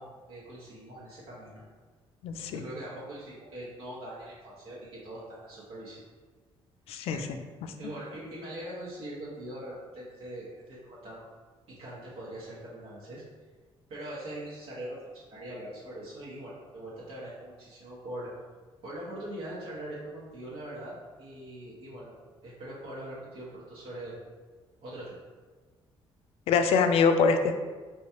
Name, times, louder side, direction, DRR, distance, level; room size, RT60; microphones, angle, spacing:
voice 1, 0.0-1.6 2.5-6.0 7.1-7.3 7.8-11.2 11.8-13.2 13.9-18.3 18.8-20.9 21.2-22.1 22.4-24.1 24.8-25.2, right 1 dB, 70° right, -8 dB, 1.3 m, -42 dB
voice 2, 2.2-2.6 6.9-7.2 26.5-27.6, left 5 dB, 85° left, 7 dB, 0.4 m, -24 dB
4.7 x 3.2 x 2.9 m, 1.4 s
cardioid pair, 175°, 10 cm